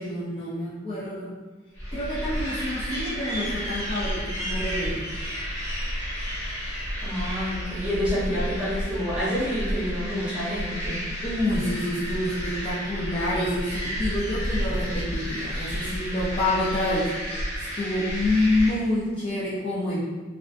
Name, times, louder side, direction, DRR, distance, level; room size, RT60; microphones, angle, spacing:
voice 1, 0.0-1.3 1.9-5.1 11.2-17.4 17.8-20.0, left 1 dB, 25° left, -8 dB, 0.3 m, -27 dB
sound 1, 1.8-18.7, equal, 65° left, 1.2 m, -31 dB
voice 2, 7.0-11.0, equal, 5° right, -9 dB, 0.7 m, -28 dB
2.4 x 2.2 x 2.4 m, 1.4 s
head